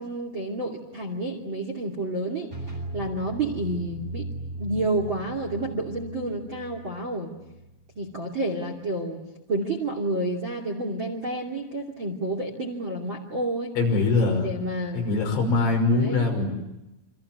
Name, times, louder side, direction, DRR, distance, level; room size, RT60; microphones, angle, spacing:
voice 1, 0.0-2.5 2.9-4.3 4.6-7.3 8.0-9.2 9.5-13.7 14.4-15.6 15.9-16.3, right 2 dB, 35° right, 3 dB, 2.4 m, -30 dB
sound 1, 2.5-8.2, right 1 dB, 10° right, 7.4 m, -38 dB
voice 2, 13.8-14.5 14.9-16.5, left 3 dB, 65° left, 2 dB, 8.1 m, -22 dB
29.0 x 26.5 x 7.6 m, 0.94 s
omnidirectional pair, 6.0 m